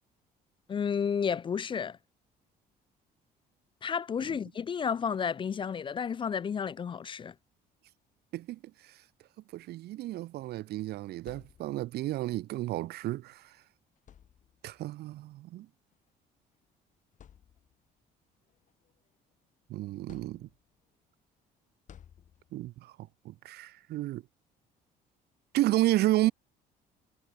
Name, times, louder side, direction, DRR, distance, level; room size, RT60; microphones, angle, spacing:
voice 1, 0.7-2.0 3.8-7.3, left 7 dB, 30° left, 0.4 m, -31 dB
voice 2, 9.5-13.5 14.6-15.7 19.7-20.5 22.5-22.9 23.2-24.2 25.5-26.3, right 16 dB, 70° right, 0.9 m, -31 dB
sound 1, 11.3-12.1 13.3-13.5 14.0-14.8 15.9-16.1 16.6-16.7 17.1-18.0 18.5-19.5 20.1-20.9 21.9-22.8, left 9 dB, 50° left, 2.6 m, -57 dB
cardioid pair, 110°, 17 cm